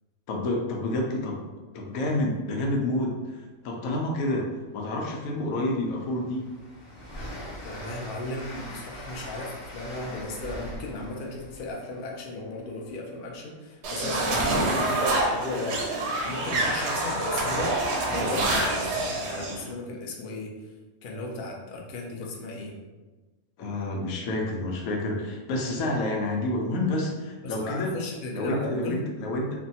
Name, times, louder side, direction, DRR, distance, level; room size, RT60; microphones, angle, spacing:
voice 1, 0.3-1.4 1.7-4.5 4.7-6.5 14.3-14.5 18.2-18.5 23.6-28.0 28.3-29.6, left 1 dB, 80° left, 0 dB, 1.0 m, -29 dB
Train, 5.5-13.2, equal, 25° left, 0.8 m, -42 dB
voice 2, 7.6-17.7 18.0-20.5 21.0-22.8 27.4-29.0, left 2 dB, 60° left, -1 dB, 0.5 m, -35 dB
sound 1, 13.8-19.6, right 2 dB, 65° right, 0.7 m, -27 dB
3.3 x 2.2 x 2.7 m, 1.3 s
omnidirectional pair, 1.5 m